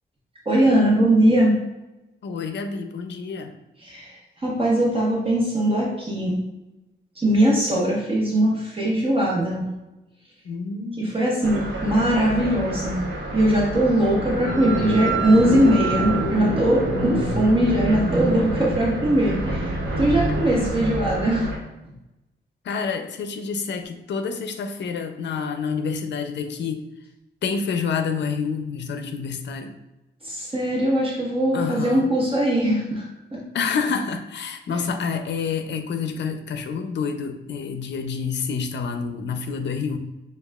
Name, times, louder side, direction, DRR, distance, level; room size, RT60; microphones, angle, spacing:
voice 1, 0.4-1.5 3.8-6.4 7.2-9.6 11.0-13.0 13.3-21.5 30.2-33.0 33.3-33.4 34.7-34.8, right 1 dB, 30° right, -5 dB, 1.1 m, -21 dB
voice 2, 2.2-3.5 10.4-11.2 20.6-20.7 22.6-26.9 27.4-29.7 31.5-32.1 33.5-40.0, left 5 dB, 65° left, 7 dB, 0.5 m, -28 dB
sound 1, 11.4-21.6, right 1 dB, 85° right, 1.0 m, -26 dB
6.8 x 2.4 x 2.3 m, 0.95 s
cardioid pair, 115°, 19 cm